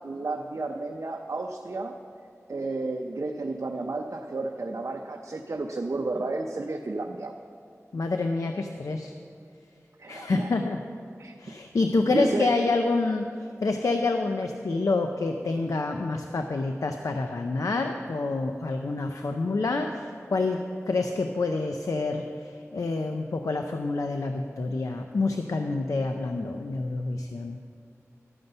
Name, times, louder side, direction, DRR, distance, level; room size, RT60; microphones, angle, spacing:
voice 1, 0.0-2.0 2.5-7.3 10.0-10.6 11.2-11.3 12.1-12.6, right 2 dB, 65° right, 2 dB, 0.6 m, -32 dB
voice 2, 7.9-9.1 10.1-10.8 11.4-13.3 13.6-20.6 20.9-27.6, left 3 dB, 85° left, 5 dB, 0.5 m, -27 dB
12.5 x 5.4 x 7.8 m, 2.5 s
wide cardioid pair, 50°, 5 cm